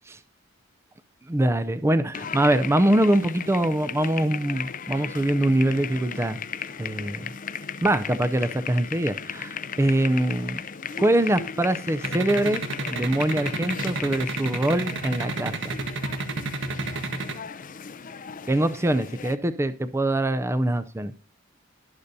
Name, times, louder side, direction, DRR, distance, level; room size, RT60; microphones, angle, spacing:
voice 1, 1.3-6.4 6.8-7.3 7.8-10.6 11.0-12.6 12.9-15.8 18.5-21.1, right 1 dB, 15° right, 12 dB, 0.4 m, -23 dB
sound 1, 2.1-19.4, left 7 dB, 40° left, 0.5 m, -36 dB
sound 2, 12.0-17.3, right 3 dB, 65° right, 1.3 m, -30 dB
20.0 x 6.7 x 2.7 m, 0.38 s
head